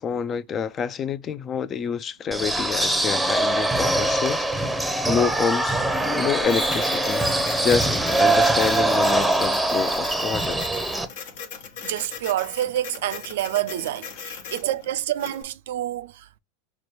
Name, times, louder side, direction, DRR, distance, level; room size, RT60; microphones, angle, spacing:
voice 1, 0.0-4.7 5.0-5.8 6.2-7.2 7.6-10.6, left 6 dB, 30° left, 0.4 m, -27 dB
sound 1, 2.3-11.0, right 2 dB, 5° right, 0.7 m, -23 dB
Printer, 6.4-15.4, left 6 dB, 65° left, 1.0 m, -39 dB
voice 2, 11.8-16.3, right 13 dB, 70° right, 0.4 m, -28 dB
5.9 x 2.2 x 3.0 m
hypercardioid pair, 95°, 0 cm